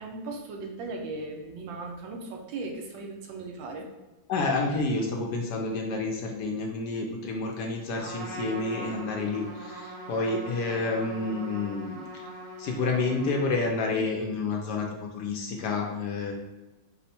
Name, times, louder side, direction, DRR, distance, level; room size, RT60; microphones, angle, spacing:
voice 1, 0.0-3.9, right 3 dB, 80° right, 2 dB, 1.4 m, -37 dB
voice 2, 4.3-12.2 12.6-16.3, left 3 dB, 70° left, 1 dB, 1.0 m, -29 dB
Trumpet, 7.9-14.1, equal, 45° right, 1.3 m, -42 dB
5.3 x 2.1 x 4.2 m, 1.1 s
omnidirectional pair, 2.1 m